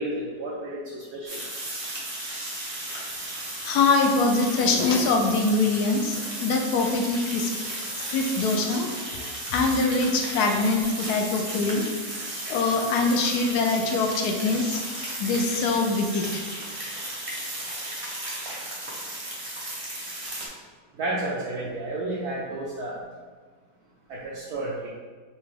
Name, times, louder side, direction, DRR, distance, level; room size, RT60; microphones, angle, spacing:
voice 1, 0.0-1.4 13.3-13.5 20.9-23.0 24.1-24.9, right 1 dB, 70° right, -6 dB, 1.1 m, -31 dB
sound 1, 1.3-20.5, right 1 dB, 40° right, 0.4 m, -35 dB
voice 2, 3.6-7.5 8.1-8.9 9.5-11.9 12.5-14.8 15.2-16.4, left 3 dB, 70° left, 2 dB, 1.0 m, -23 dB
6.0 x 2.2 x 3.2 m, 1.5 s
omnidirectional pair, 1.9 m